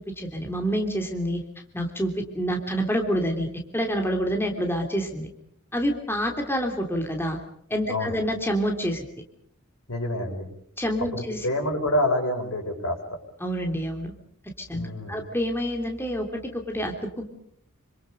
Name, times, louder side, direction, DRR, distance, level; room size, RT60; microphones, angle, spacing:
voice 1, 0.2-1.4 1.7-3.5 3.7-5.3 5.7-7.4 7.7-9.0 10.8-11.5 13.4-14.1 14.6-17.3, equal, 10° left, 3 dB, 3.1 m, -27 dB
voice 2, 9.9-10.5 11.1-13.2 14.7-15.2, left 1 dB, 85° left, 3 dB, 7.0 m, -27 dB
27.5 x 26.0 x 5.4 m, 0.67 s
head